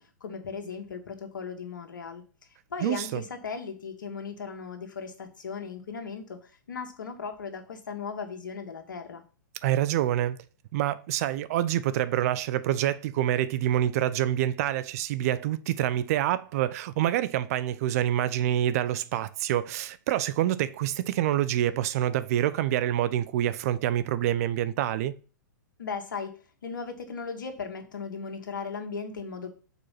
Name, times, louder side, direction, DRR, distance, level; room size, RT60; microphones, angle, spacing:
voice 1, 0.0-2.2 2.7-9.2 25.8-26.3 26.6-29.5, left 5 dB, 75° left, 1.6 m, -37 dB
voice 2, 2.8-3.2 9.6-10.4 10.7-25.2, right 12 dB, 50° right, 0.6 m, -26 dB
6.7 x 4.7 x 5.8 m
figure-of-eight pair, 110°, 11 cm